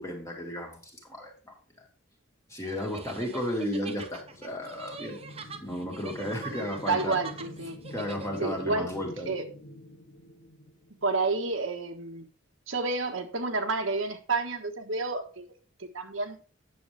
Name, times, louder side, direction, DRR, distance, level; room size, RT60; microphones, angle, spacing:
voice 1, 0.0-1.9 2.5-5.2 5.6-7.2 7.9-9.3, equal, 15° left, 0 dB, 2.1 m, -34 dB
sound 1, 2.6-8.6, right 4 dB, 30° right, 0.8 m, -44 dB
sound 2, 3.9-11.4, left 1 dB, 80° left, 1.7 m, -48 dB
voice 2, 6.9-7.8 8.4-8.9 9.3-9.5 11.0-12.3 12.7-15.4 15.8-16.4, right 3 dB, 70° right, 4 dB, 1.4 m, -30 dB
9.6 x 7.2 x 3.4 m, 0.39 s
head